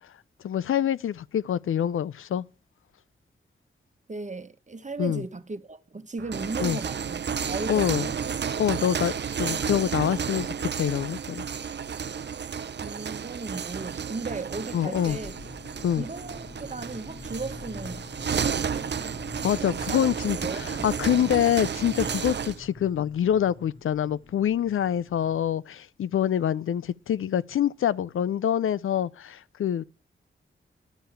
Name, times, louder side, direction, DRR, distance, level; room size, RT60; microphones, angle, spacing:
voice 1, 0.4-2.4 5.0-5.2 6.6-6.8 7.7-8.1 8.6-9.1 9.4-11.4 14.7-15.2 15.8-16.1 19.4-29.8, left 9 dB, 80° left, 0.5 m, -26 dB
voice 2, 4.1-8.2 12.8-15.4 15.9-18.1 19.6-20.1 20.4-21.3, right 3 dB, 35° right, 1.3 m, -37 dB
sound 1, 6.2-22.6, right 7 dB, 55° right, 0.6 m, -32 dB
sound 2, 15.1-25.5, left 3 dB, 25° left, 0.9 m, -45 dB
11.0 x 5.6 x 8.6 m
cardioid pair, 50°, 21 cm